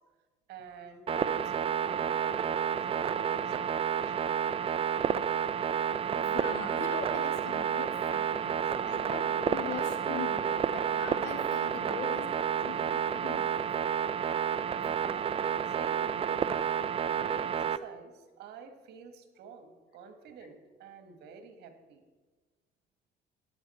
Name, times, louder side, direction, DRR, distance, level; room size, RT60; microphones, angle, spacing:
voice 1, 0.5-4.4 15.6-16.4 17.1-22.0, right 5 dB, 75° right, 7 dB, 1.6 m, -50 dB
sound 1, 1.1-17.8, right 8 dB, 35° right, 0.5 m, -30 dB
voice 2, 6.2-8.6 8.9-13.5 14.8-15.0, left 6 dB, 85° left, 4 dB, 2.1 m, -41 dB
14.0 x 10.0 x 4.3 m, 1.3 s
cardioid pair, 110°, 17 cm